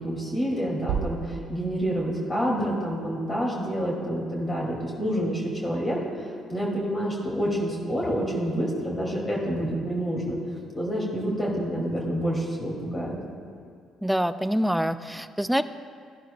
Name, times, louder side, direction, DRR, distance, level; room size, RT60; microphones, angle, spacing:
voice 1, 0.0-6.0 6.2-10.4 10.7-13.2, equal, 30° left, -3 dB, 2.4 m, -28 dB
sound 1, 0.9-2.7, right 7 dB, 80° right, 0.4 m, -34 dB
voice 2, 14.0-15.6, equal, 5° right, 11 dB, 0.3 m, -25 dB
13.5 x 11.0 x 2.3 m, 2.2 s
supercardioid pair, 70°, 0 cm